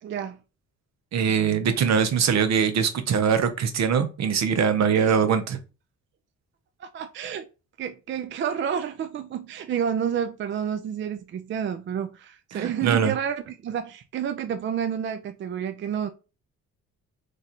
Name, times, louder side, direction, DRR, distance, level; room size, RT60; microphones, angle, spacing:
voice 1, 0.0-0.4 4.9-5.1 6.8-7.5 7.8-16.1, right 8 dB, 40° right, 0.4 m, -30 dB
voice 2, 1.1-5.6 12.5-13.1, right 7 dB, 60° right, 0.8 m, -22 dB
3.2 x 2.5 x 4.2 m
cardioid pair, 90°, 30 cm